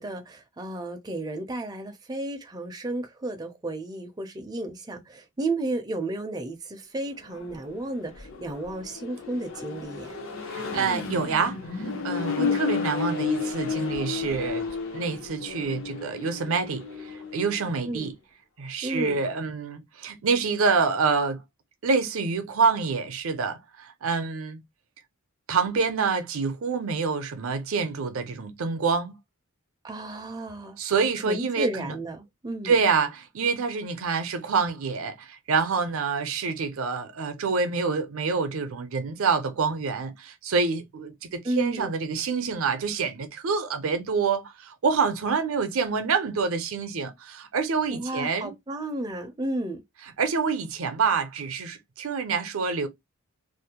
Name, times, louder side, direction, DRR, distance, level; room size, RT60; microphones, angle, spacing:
voice 1, 0.0-10.2 12.4-12.6 17.9-18.1 18.8-19.2 29.8-30.8 31.3-32.7 41.4-41.9 47.9-49.8, right 2 dB, 20° right, 0.4 m, -33 dB
Accelerating revving vroom, 7.2-17.6, left 5 dB, 65° left, 0.7 m, -32 dB
voice 2, 10.5-14.7 14.9-18.1 18.6-21.4 21.8-24.6 25.5-29.1 30.8-31.9 32.6-48.5 50.2-52.9, right 5 dB, 70° right, 0.5 m, -27 dB
2.5 x 2.0 x 2.8 m
head